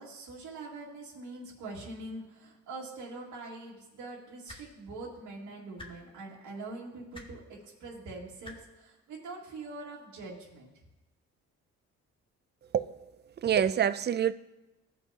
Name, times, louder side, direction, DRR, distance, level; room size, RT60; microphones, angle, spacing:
voice 1, 0.0-10.8, right 2 dB, 80° right, 2.2 m, -44 dB
sound 1, 4.5-4.6 5.8-5.9 7.1-7.3 8.4-8.6 9.8-9.9, left 2 dB, 15° left, 1.5 m, -45 dB
voice 2, 13.4-14.3, right 9 dB, 35° right, 0.4 m, -26 dB
16.5 x 5.5 x 2.9 m
cardioid pair, 90°, 30 cm